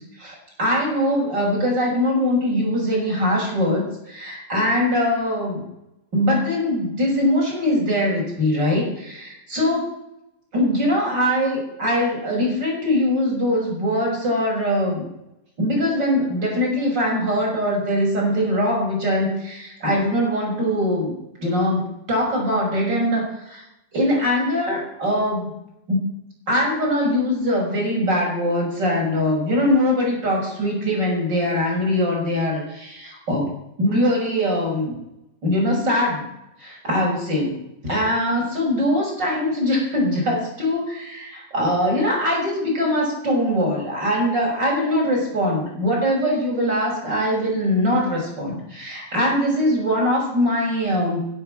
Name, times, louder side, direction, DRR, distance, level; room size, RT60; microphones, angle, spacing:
voice 1, 0.2-5.6 6.1-9.9 10.5-15.0 15.6-21.1 21.4-23.6 23.9-25.5 25.9-26.0 26.5-33.4 33.8-34.9 35.4-36.3 36.6-51.2, left 1 dB, 20° right, -2 dB, 6.5 m, -22 dB
17.0 x 10.5 x 7.6 m, 0.86 s
omnidirectional pair, 5.9 m